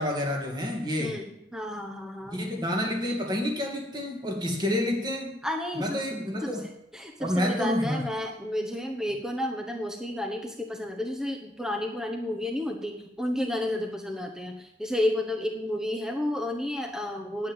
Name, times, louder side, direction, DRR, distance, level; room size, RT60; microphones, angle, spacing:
voice 1, 0.0-1.2 2.3-5.3 5.8-6.6 7.2-8.0, left 1 dB, 20° right, 0 dB, 2.3 m, -29 dB
voice 2, 1.0-2.4 5.4-6.0 6.4-6.6 6.9-17.5, left 1 dB, 5° right, 3 dB, 1.0 m, -31 dB
9.7 x 7.4 x 9.1 m, 0.82 s
head